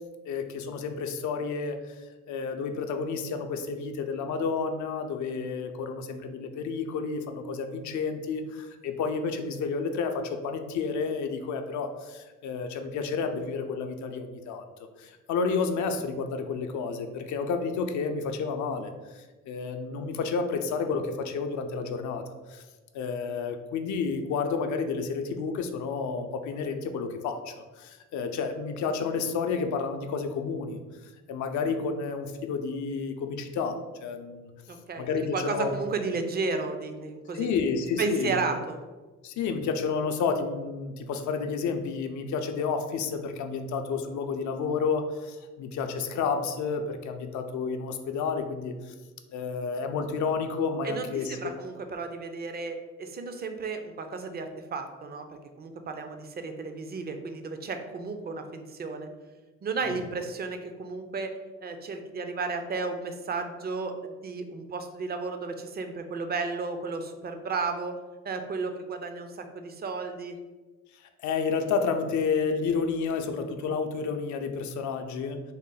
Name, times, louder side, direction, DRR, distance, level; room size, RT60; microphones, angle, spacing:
voice 1, 0.3-14.6 15.0-22.2 22.5-22.6 22.9-30.8 31.3-34.5 35.0-35.7 37.3-38.4 39.2-48.9 49.3-51.5 71.2-75.4, left 5 dB, 70° left, 6 dB, 0.5 m, -30 dB
voice 2, 34.7-37.5 38.0-38.8 50.8-55.3 55.6-59.1 59.6-68.0 68.2-70.4, right 4 dB, 30° right, 6 dB, 0.4 m, -33 dB
3.7 x 2.0 x 3.8 m, 1.2 s
cardioid pair, 90°, 30 cm